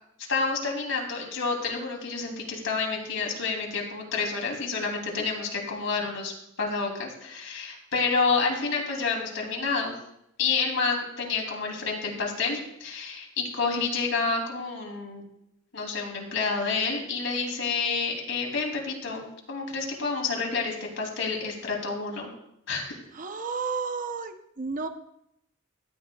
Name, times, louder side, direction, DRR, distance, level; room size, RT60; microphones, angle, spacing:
voice 1, 0.3-9.9 10.4-15.2 15.7-22.3 22.7-22.9, left 4 dB, 70° left, 0 dB, 2.9 m, -29 dB
voice 2, 23.1-24.9, right 4 dB, 40° right, 7 dB, 0.7 m, -32 dB
15.5 x 11.0 x 2.3 m, 0.77 s
head